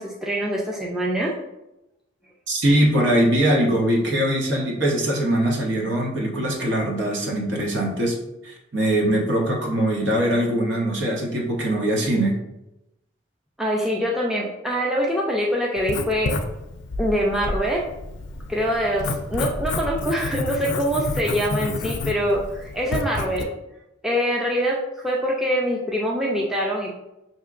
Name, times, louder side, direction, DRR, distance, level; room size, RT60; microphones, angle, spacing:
voice 1, 0.0-1.3 13.6-16.3 17.0-17.8 18.5-23.5 24.0-26.9, equal, ahead, -3 dB, 0.4 m, -24 dB
voice 2, 2.5-8.2 8.4-12.4, right 1 dB, 65° right, -1 dB, 0.9 m, -22 dB
Writing, 15.8-23.4, left 3 dB, 70° left, 0.4 m, -30 dB
5.6 x 2.8 x 2.5 m, 0.91 s
head